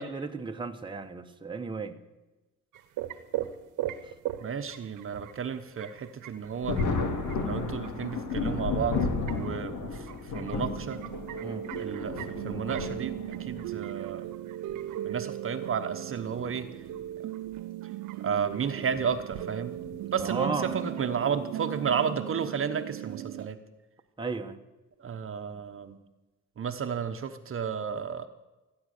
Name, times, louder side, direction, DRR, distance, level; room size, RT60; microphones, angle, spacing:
voice 1, 0.0-2.0 11.4-11.7 20.2-20.8 24.2-24.6, right 4 dB, 15° right, 4 dB, 1.1 m, -34 dB
sound 1, 2.7-22.1, right 12 dB, 85° right, 1.0 m, -43 dB
voice 2, 4.4-6.8 7.4-9.0 9.3-10.1 10.3-11.0 11.8-14.3 15.0-16.7 18.2-19.7 20.1-23.6 25.0-26.0 26.6-28.3, right 7 dB, 45° right, 8 dB, 1.0 m, -32 dB
Thunder, 6.6-13.7 14.7-14.8 16.3-16.5 16.9-17.0 18.9-19.1 19.8-20.2, left 4 dB, 75° left, 2.2 m, -33 dB
sound 2, 10.6-23.5, right 14 dB, 65° right, 0.6 m, -38 dB
15.0 x 9.6 x 6.6 m, 1.1 s
cardioid pair, 90°, 30 cm